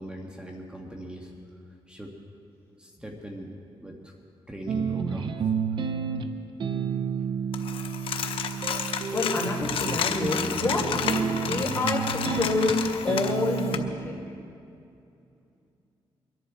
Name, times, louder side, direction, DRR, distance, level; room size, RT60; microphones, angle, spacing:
voice 1, 0.0-1.4 1.9-2.2 2.8-4.1 4.5-5.4 5.9-6.0, equal, 10° right, 1 dB, 1.7 m, -40 dB
sound 1, 4.7-13.9, right 6 dB, 60° right, 0.9 m, -31 dB
Coin (dropping), 7.5-13.8, left 7 dB, 75° left, 0.9 m, -31 dB
voice 2, 9.1-14.3, left 2 dB, 25° left, -4 dB, 4.2 m, -28 dB
23.5 x 11.0 x 4.6 m, 2.5 s
cardioid pair, 80°, 9 cm